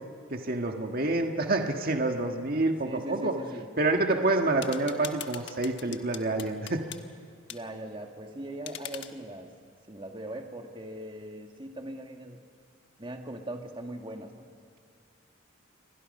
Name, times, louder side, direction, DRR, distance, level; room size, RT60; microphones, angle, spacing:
voice 1, 0.3-3.3 3.8-6.8, right 2 dB, 45° right, 3 dB, 1.6 m, -27 dB
voice 2, 2.8-3.7 7.5-9.5 9.9-12.4 13.0-14.5, right 1 dB, 25° right, 3 dB, 1.8 m, -40 dB
sound 1, 4.6-7.0 7.5-7.6 8.7-9.1, left 10 dB, 55° left, 1.2 m, -41 dB
29.0 x 23.5 x 5.4 m, 2.3 s
head